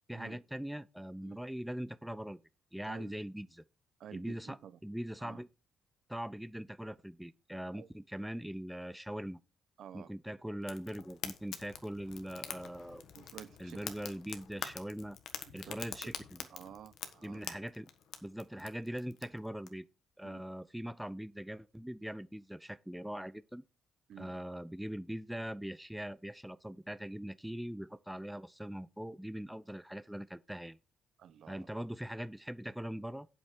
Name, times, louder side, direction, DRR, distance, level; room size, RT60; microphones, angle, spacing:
voice 1, 0.1-2.4 2.7-3.6 4.1-5.5 6.1-9.4 9.9-13.1 13.6-15.2 15.5-16.4 17.2-17.9 18.2-19.8 20.2-23.6 24.2-30.8 31.5-33.3, equal, 5° right, 0.4 m, -41 dB
voice 2, 4.0-4.8 5.2-5.4 7.7-7.9 9.8-10.1 13.1-13.8 15.6-15.8 16.5-17.4 20.2-20.4 24.1-24.3 31.2-31.8, right 9 dB, 70° right, 0.8 m, -51 dB
Fire, 10.6-19.7, left 9 dB, 75° left, 1.3 m, -46 dB
8.3 x 7.3 x 5.0 m
cardioid pair, 90°, 0 cm